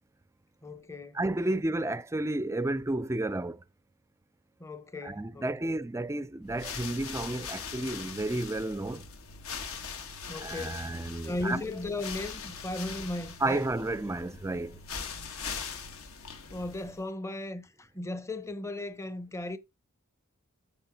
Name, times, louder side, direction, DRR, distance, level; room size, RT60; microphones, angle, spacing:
voice 1, 0.6-1.2 1.5-1.6 4.6-5.8 10.3-10.9 11.2-13.7 16.5-19.6, left 2 dB, 15° left, 0.7 m, -36 dB
voice 2, 1.1-3.6 5.0-9.1 10.3-11.6 13.4-14.8, right 2 dB, 15° right, 0.4 m, -32 dB
sound 1, 6.4-17.1, left 5 dB, 70° left, 1.4 m, -41 dB
8.9 x 3.5 x 5.9 m
head